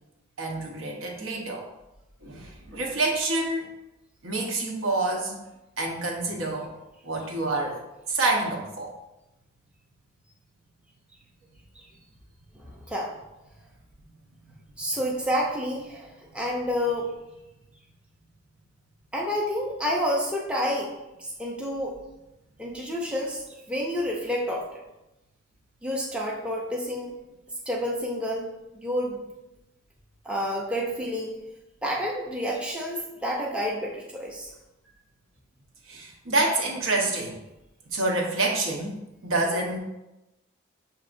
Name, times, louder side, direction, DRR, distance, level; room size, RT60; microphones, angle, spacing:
voice 1, 0.4-1.7 2.2-3.7 4.2-5.3 5.8-6.7 7.0-7.8 8.1-8.9 14.4-14.5 35.9-37.4 37.9-39.0 39.2-39.8, right 2 dB, 80° right, 0 dB, 0.9 m, -27 dB
voice 2, 12.5-13.1 14.8-17.1 19.1-20.9 21.2-22.0 22.6-24.7 25.8-27.2 27.7-29.2 30.2-31.4 31.8-34.5, equal, 5° right, -3 dB, 0.5 m, -29 dB
6.7 x 2.7 x 2.5 m, 0.95 s
head